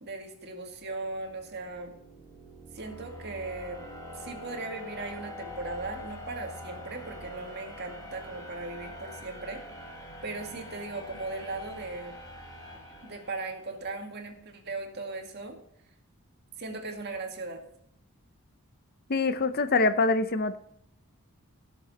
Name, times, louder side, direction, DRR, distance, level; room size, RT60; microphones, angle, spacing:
voice 1, 0.0-1.9 2.7-3.8 4.1-9.6 10.2-12.2 13.0-15.6 16.6-17.6, right 3 dB, 45° right, 3 dB, 2.1 m, -38 dB
sound 1, 0.9-13.8, left 1 dB, 15° left, 1.9 m, -44 dB
voice 2, 19.1-20.6, left 3 dB, 45° left, 12 dB, 0.7 m, -24 dB
17.0 x 7.0 x 4.2 m, 0.74 s
head